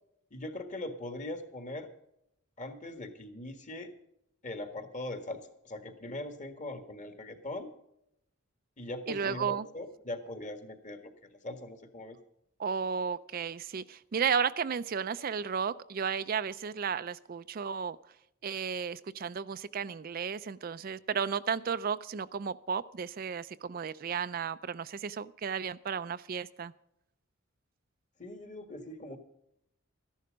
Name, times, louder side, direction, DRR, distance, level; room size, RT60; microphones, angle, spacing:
voice 1, 0.3-1.9 2.6-3.9 4.4-7.7 8.8-12.2 28.2-29.2, left 1 dB, 35° left, 7 dB, 1.7 m, -41 dB
voice 2, 9.1-9.7 12.6-18.0 18.4-26.7, right 6 dB, 45° right, 13 dB, 0.4 m, -33 dB
14.0 x 11.0 x 5.2 m, 0.78 s
head